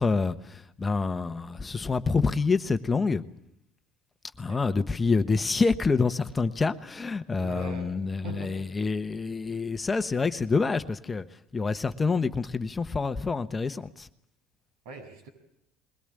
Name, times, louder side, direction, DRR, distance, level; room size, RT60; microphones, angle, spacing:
voice 1, 0.0-3.2 4.4-11.2 11.5-14.1, left 4 dB, 20° left, 1.1 m, -27 dB
voice 2, 7.4-7.9 8.2-8.7 14.9-15.3, right 2 dB, 85° right, 7.1 m, -41 dB
22.0 x 18.0 x 9.0 m
supercardioid pair, 115°, 0 cm